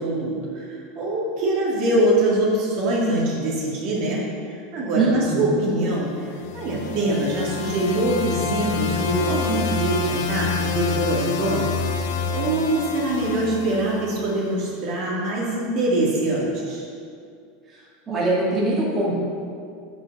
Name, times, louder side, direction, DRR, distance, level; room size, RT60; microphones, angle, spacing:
voice 1, 0.0-4.2 4.5-11.7 12.3-16.8, right 1 dB, 50° right, -5 dB, 2.4 m, -24 dB
voice 2, 4.9-5.6 17.7-17.8 18.1-19.2, right 2 dB, 20° right, -7 dB, 2.3 m, -22 dB
sound 1, 6.2-14.4, left 5 dB, 70° left, 0.7 m, -27 dB
9.3 x 5.3 x 5.4 m, 2.3 s
supercardioid pair, 135°, 0 cm